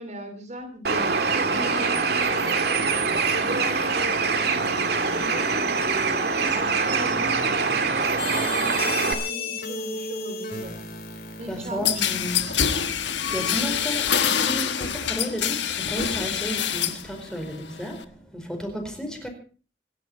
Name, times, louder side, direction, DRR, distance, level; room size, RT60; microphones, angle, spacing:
voice 1, 0.0-2.8 3.1-6.3 6.5-10.8 11.4-12.9, right 1 dB, 40° right, 2.6 m, -38 dB
Bird, 0.8-9.1, right 4 dB, 60° right, 2.3 m, -24 dB
sound 1, 8.2-14.9, left 3 dB, 55° left, 2.7 m, -35 dB
voice 2, 11.5-12.6 13.3-19.3, equal, 5° left, 4.6 m, -33 dB
sound 2, 11.8-17.1 17.4-18.0, left 8 dB, 80° left, 1.4 m, -25 dB
26.5 x 11.5 x 4.3 m
head